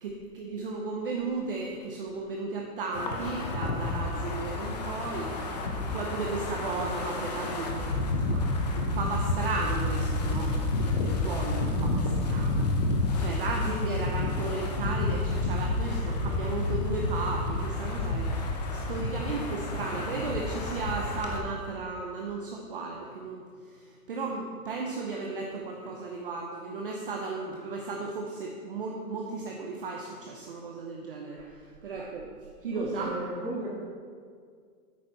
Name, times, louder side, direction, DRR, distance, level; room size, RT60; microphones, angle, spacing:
voice 1, 0.0-5.3 5.8-10.6 11.0-12.7 13.2-18.3 18.7-23.4 23.7-31.4 31.8-32.3 32.6-33.2, right 3 dB, 35° right, 0 dB, 0.8 m, -35 dB
Wind, 2.9-21.4, left 2 dB, 25° left, 0.7 m, -30 dB
voice 2, 32.7-33.7, right 2 dB, 10° right, -6 dB, 1.6 m, -36 dB
10.5 x 8.6 x 3.9 m, 2.1 s
hypercardioid pair, 170°, 47 cm